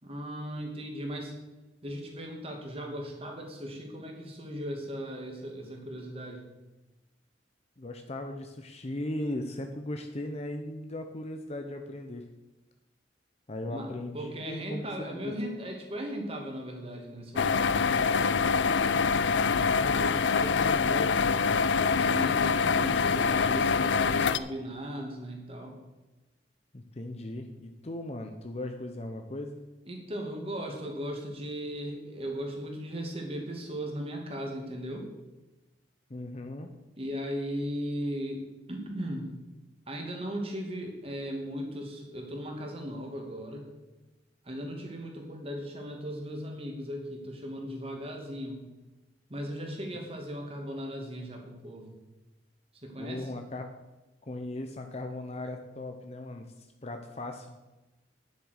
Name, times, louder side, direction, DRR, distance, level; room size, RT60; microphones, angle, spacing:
voice 1, 0.0-1.3 1.8-6.4 13.7-13.9 14.1-18.4 22.0-25.8 29.9-35.1 37.0-38.4 38.7-39.3 39.9-43.7 44.4-48.6 49.3-51.9 52.8-53.3, equal, 35° right, 1 dB, 2.4 m, -37 dB
voice 2, 7.8-12.2 13.5-15.4 19.2-21.7 26.7-29.6 36.1-36.7 53.0-53.7 54.2-57.6, left 1 dB, 35° left, 5 dB, 0.7 m, -38 dB
sound 1, 17.4-24.4, left 5 dB, 85° left, 0.5 m, -25 dB
10.0 x 7.5 x 6.5 m, 1.1 s
head